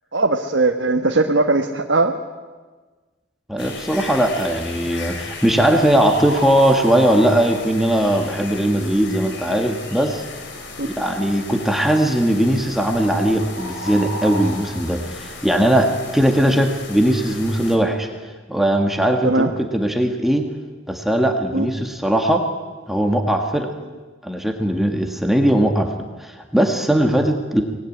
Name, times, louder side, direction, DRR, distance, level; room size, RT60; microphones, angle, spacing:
voice 1, 0.1-2.1 10.8-10.9 16.5-16.6 19.2-19.5 21.5-21.7, right 3 dB, 65° right, 3 dB, 1.5 m, -19 dB
voice 2, 3.5-10.2 10.8-18.1 18.5-20.4 20.9-22.4 22.9-23.7 24.2-25.9 26.2-27.6, right 1 dB, ahead, 3 dB, 1.7 m, -19 dB
sound 1, 3.6-17.8, left 2 dB, 60° left, 3.8 m, -34 dB
25.0 x 19.5 x 9.8 m, 1.4 s
head